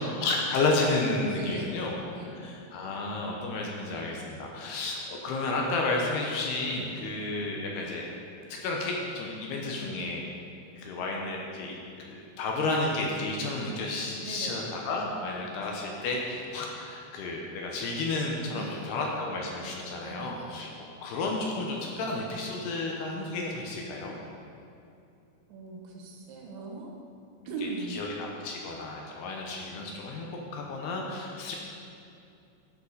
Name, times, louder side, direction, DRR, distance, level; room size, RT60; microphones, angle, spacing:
voice 1, 0.0-2.0 2.3-8.0 8.5-10.2 10.8-11.8 12.0-20.7 21.0-24.1 27.6-31.6, left 2 dB, 75° left, -1 dB, 2.9 m, -32 dB
voice 2, 1.3-1.9 2.2-2.5 14.2-14.8 18.5-19.0 20.0-20.6 25.5-27.0 27.5-28.0, right 3 dB, 85° right, -1 dB, 3.8 m, -39 dB
11.0 x 7.4 x 5.5 m, 2.6 s
omnidirectional pair, 5.1 m